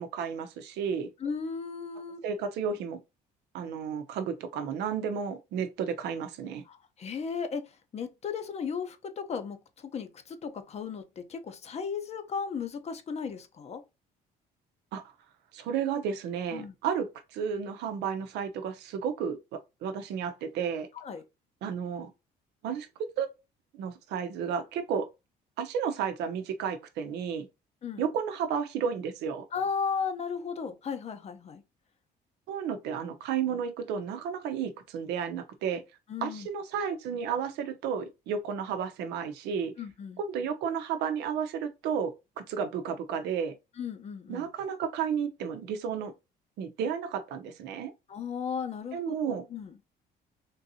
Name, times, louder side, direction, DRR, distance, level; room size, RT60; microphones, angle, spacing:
voice 1, 0.0-1.1 2.2-3.0 3.5-6.6 14.9-15.0 15.5-20.9 21.6-22.1 22.6-23.3 23.7-25.1 25.6-27.5 28.0-29.4 32.5-35.8 36.2-39.7 40.2-42.1 42.5-43.5 44.3-46.1 46.6-47.9 48.9-49.4, right 7 dB, 85° right, 0.7 m, -32 dB
voice 2, 1.2-2.2 6.7-7.7 7.9-13.8 16.5-16.7 20.9-21.2 27.8-28.0 29.5-31.6 36.1-36.5 39.8-40.2 43.8-44.5 48.1-49.7, left 6 dB, 40° left, 0.6 m, -35 dB
3.7 x 2.6 x 2.7 m
cardioid pair, 110°, 17 cm